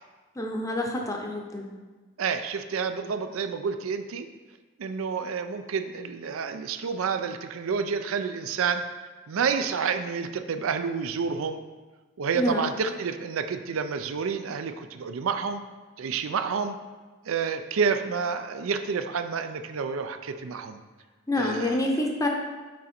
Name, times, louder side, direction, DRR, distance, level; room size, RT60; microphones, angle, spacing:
voice 1, 0.4-1.7 12.3-12.7 21.3-22.3, left 1 dB, 15° left, 1 dB, 0.6 m, -27 dB
voice 2, 2.2-4.3 4.8-8.8 9.3-11.6 12.2-15.6 16.0-16.8 17.2-20.8 21.4-21.8, right 5 dB, 85° right, 8 dB, 0.4 m, -29 dB
6.2 x 5.1 x 4.3 m, 1.3 s
head